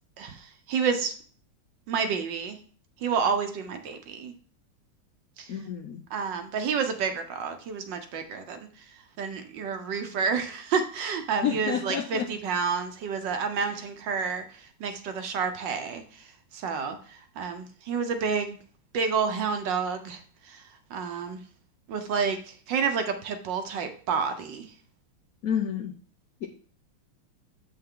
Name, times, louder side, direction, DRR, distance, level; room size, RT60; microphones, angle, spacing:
voice 1, 0.2-1.1 1.9-2.6 3.0-4.3 5.4-5.5 6.1-8.7 9.2-14.4 14.8-16.0 16.5-17.0 17.4-18.6 18.9-20.2 20.5-20.6 20.9-21.4 21.9-22.4 22.7-24.7, right 6 dB, 65° right, 7 dB, 1.4 m, -29 dB
voice 2, 5.5-6.0 11.4-12.3 25.4-25.9 26.4-26.5, left 8 dB, 85° left, 5 dB, 0.7 m, -29 dB
7.6 x 5.7 x 3.7 m, 0.44 s
omnidirectional pair, 2.3 m